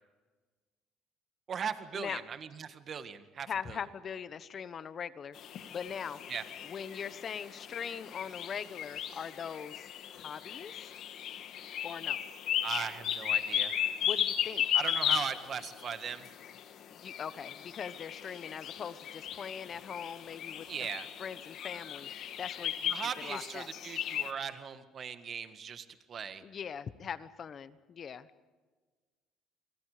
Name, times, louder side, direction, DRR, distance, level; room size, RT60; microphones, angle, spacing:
voice 1, 1.5-3.8 6.3-6.4 12.6-13.7 14.7-16.3 20.7-21.1 22.9-26.4, right 7 dB, 45° right, 10 dB, 1.8 m, -39 dB
voice 2, 3.5-5.4 5.7-6.2 6.6-9.9 10.1-10.9 11.8-12.2 14.0-14.6 16.9-20.7 21.2-22.1 22.4-23.7 26.4-28.3, left 7 dB, 40° left, 14 dB, 1.1 m, -41 dB
sound 1, 5.3-24.3, left 10 dB, 60° left, 1.8 m, -36 dB
29.0 x 23.5 x 5.1 m, 1.4 s
cardioid pair, 110°, 0 cm